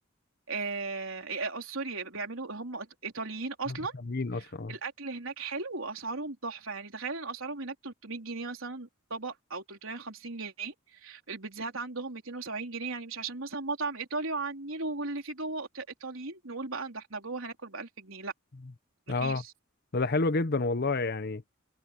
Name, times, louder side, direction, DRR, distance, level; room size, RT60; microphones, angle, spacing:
voice 1, 0.5-3.9 4.4-18.3 19.1-19.5, right 3 dB, 80° right, 3.9 m, -37 dB
voice 2, 4.0-4.7 19.1-19.4 19.9-21.4, left 3 dB, 50° left, 0.8 m, -29 dB
head